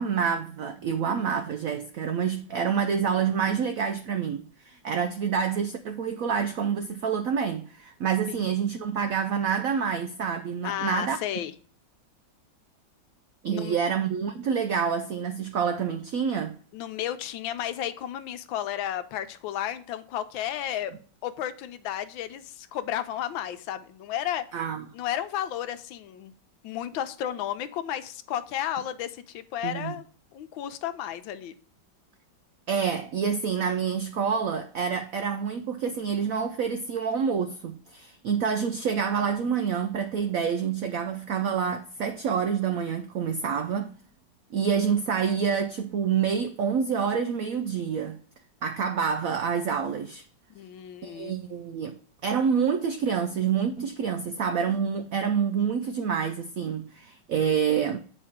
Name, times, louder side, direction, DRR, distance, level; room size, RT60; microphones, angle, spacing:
voice 1, 0.0-11.2 13.4-16.6 24.5-24.9 29.6-30.0 32.7-43.9 44.5-48.2 48.6-50.2 51.0-52.0 52.2-58.0, right 7 dB, 85° right, 0.7 m, -27 dB
voice 2, 1.0-1.4 8.3-8.4 10.6-11.5 13.5-13.8 16.7-20.9 21.2-24.5 24.9-26.3 26.6-30.0 30.3-31.5 50.5-51.3, left 11 dB, 85° left, 1.4 m, -33 dB
8.2 x 4.7 x 3.5 m
omnidirectional pair, 2.1 m